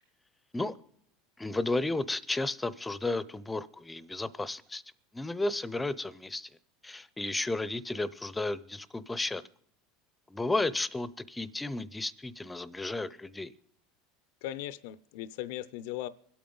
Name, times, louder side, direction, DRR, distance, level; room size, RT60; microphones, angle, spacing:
voice 1, 1.4-4.8 5.1-6.5 6.8-9.4 10.3-13.5, left 2 dB, 10° left, 0.5 m, -33 dB
voice 2, 14.4-16.1, left 13 dB, 75° left, 0.5 m, -38 dB
25.5 x 8.6 x 3.9 m
supercardioid pair, 135°, 0 cm